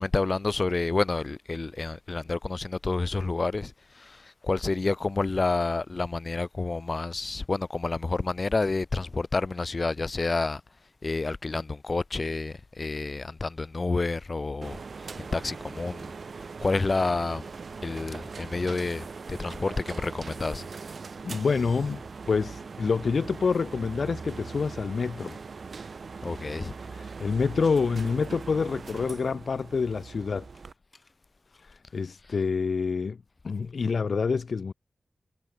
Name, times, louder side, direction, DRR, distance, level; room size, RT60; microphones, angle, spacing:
voice 1, 0.0-10.6 11.0-14.8 15.2-16.1 16.6-17.4 17.8-20.7 26.2-26.7, left 3 dB, 35° left, 4.3 m, -29 dB
sound 1, 14.6-30.7, right 4 dB, 55° right, 1.7 m, -41 dB
voice 2, 21.2-22.0 22.3-25.4 26.9-30.5 31.6-33.2 33.4-34.7, left 5 dB, 60° left, 1.4 m, -27 dB
wide cardioid pair, 150°, 0 cm